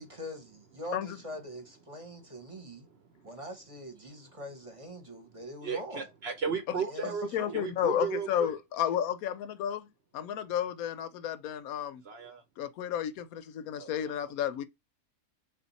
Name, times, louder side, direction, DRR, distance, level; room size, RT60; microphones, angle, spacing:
voice 1, 0.0-2.9 3.2-6.1 6.9-7.6, equal, 25° right, 0.9 m, -43 dB
voice 2, 5.6-7.3 7.5-8.5 12.0-12.4 13.8-14.1, right 6 dB, 55° right, 0.8 m, -35 dB
voice 3, 7.3-9.9 10.1-12.0 12.6-14.7, left 10 dB, 85° left, 1.1 m, -32 dB
3.6 x 2.5 x 4.0 m
omnidirectional pair, 1.5 m